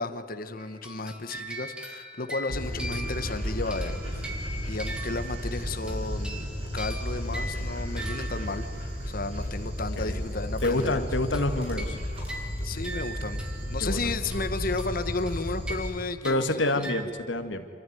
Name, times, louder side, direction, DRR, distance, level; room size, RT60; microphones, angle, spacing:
voice 1, 0.0-6.5 6.7-11.1 12.6-16.9, left 3 dB, 50° left, 9 dB, 1.3 m, -33 dB
sound 1, 0.6-9.1 11.3-13.9 14.2-17.0, right 1 dB, 5° right, 2.4 m, -41 dB
Dog, 2.5-15.9, equal, 30° right, 7.9 m, -33 dB
voice 2, 10.6-12.0 13.8-14.1 16.2-17.6, left 2 dB, 70° left, 7 dB, 1.9 m, -27 dB
26.5 x 14.5 x 9.4 m, 2.3 s
head